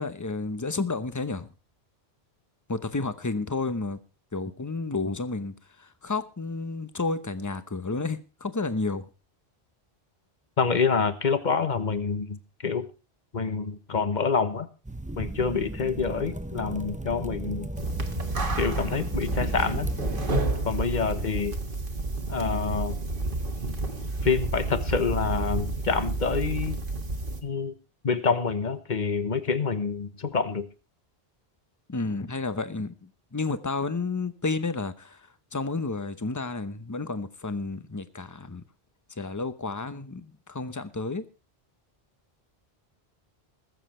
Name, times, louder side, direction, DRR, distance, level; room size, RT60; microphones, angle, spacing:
voice 1, 0.0-1.5 2.7-4.0 4.3-9.1 31.9-38.6 39.1-41.2, left 3 dB, 20° left, 0.8 m, -31 dB
voice 2, 10.6-12.9 13.3-14.7 15.2-17.7 18.6-19.9 20.6-21.6 22.3-23.0 24.2-26.8 27.4-27.7 28.0-30.7, left 5 dB, 45° left, 1.3 m, -27 dB
sound 1, 14.8-20.4, right 1 dB, 10° right, 0.6 m, -36 dB
sound 2, 17.8-27.4, right 2 dB, 55° right, 1.8 m, -30 dB
20.5 x 7.5 x 4.4 m
omnidirectional pair, 1.1 m